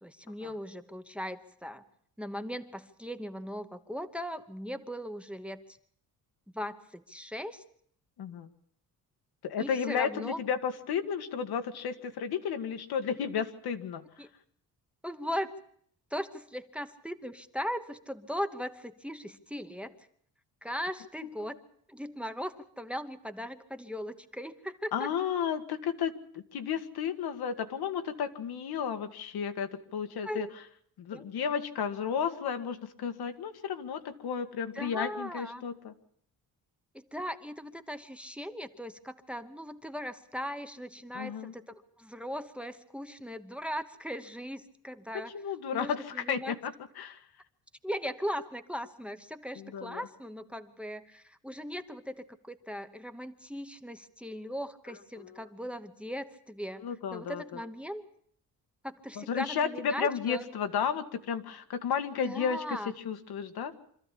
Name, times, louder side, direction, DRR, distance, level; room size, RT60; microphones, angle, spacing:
voice 1, 0.0-1.8 2.2-5.6 6.5-7.6 9.6-10.4 14.2-14.3 15.0-15.5 16.1-20.0 20.6-21.6 21.9-25.1 30.2-30.5 31.1-31.3 34.7-35.6 36.9-45.3 45.7-46.6 47.8-58.0 58.8-60.5 62.2-62.9, equal, 5° right, 9 dB, 1.0 m, -38 dB
voice 2, 8.2-8.5 9.4-14.0 21.2-21.5 24.9-30.5 31.0-35.9 41.1-41.5 45.1-47.2 49.6-50.0 54.9-55.4 56.8-57.6 59.2-62.8 63.1-63.7, left 7 dB, 80° left, 9 dB, 1.9 m, -33 dB
25.5 x 14.5 x 8.5 m, 0.65 s
wide cardioid pair, 175°, 37 cm